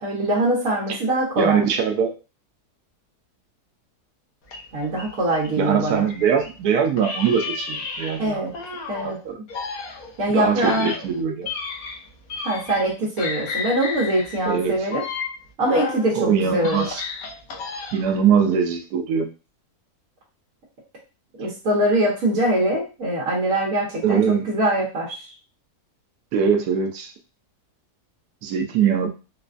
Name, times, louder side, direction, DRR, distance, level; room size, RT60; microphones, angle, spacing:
voice 1, 0.0-1.7 4.7-6.0 8.2-8.5 8.9-9.2 10.2-10.9 12.4-15.0 15.6-16.8 21.4-25.2, right 1 dB, 60° right, -5 dB, 1.3 m, -23 dB
voice 2, 1.4-2.1 5.6-8.5 9.0-9.4 10.3-11.5 14.5-14.8 16.2-17.0 17.9-19.3 24.0-24.5 26.3-27.1 28.4-29.1, right 7 dB, 75° right, 4 dB, 1.0 m, -22 dB
sound 1, 4.5-6.6 7.0-9.2 9.5-12.9 13.2-16.1 16.5-18.2, left 4 dB, 70° left, 1.2 m, -33 dB
4.0 x 2.2 x 2.5 m, 0.31 s
omnidirectional pair, 1.7 m